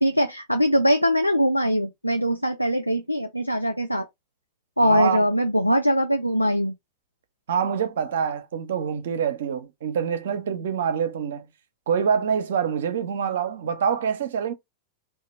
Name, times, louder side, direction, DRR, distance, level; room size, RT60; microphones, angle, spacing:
voice 1, 0.0-4.1 4.8-6.7, equal, 90° left, 0.3 m, -22 dB
voice 2, 4.8-5.2 7.5-11.4 11.9-14.5, right 7 dB, 60° right, 0.6 m, -25 dB
2.8 x 2.2 x 4.2 m
figure-of-eight pair, 90°, 0 cm